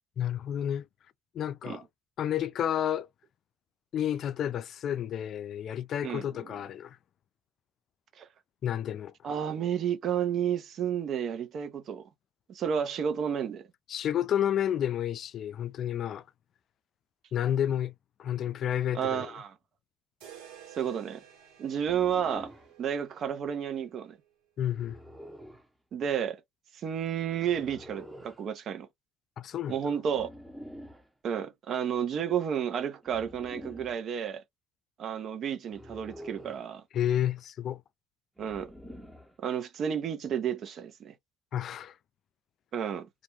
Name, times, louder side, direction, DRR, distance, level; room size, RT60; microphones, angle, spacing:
voice 1, 0.2-0.9 1.3-1.8 2.2-3.1 3.9-7.0 8.6-9.1 13.9-16.2 17.3-17.9 18.2-19.3 24.6-25.0 29.4-29.8 36.9-37.8 41.5-42.0, left 10 dB, 55° left, 0.4 m, -30 dB
voice 2, 6.0-6.5 8.2-8.3 9.2-12.0 12.5-13.7 18.9-19.5 20.8-21.2 21.6-22.5 22.8-24.2 25.9-26.4 26.7-28.9 29.7-30.3 31.2-34.4 35.0-36.8 38.4-38.7 39.4-41.1 42.7-43.1, right 8 dB, 50° right, 0.8 m, -31 dB
sound 1, 20.2-24.3, right 9 dB, 80° right, 1.2 m, -53 dB
Monster Growls, 21.8-22.7 24.7-25.7 27.4-28.4 30.1-31.1 33.0-34.0 35.7-36.7 38.4-39.4, equal, 5° right, 0.8 m, -47 dB
2.4 x 2.2 x 3.0 m
supercardioid pair, 80°, 0 cm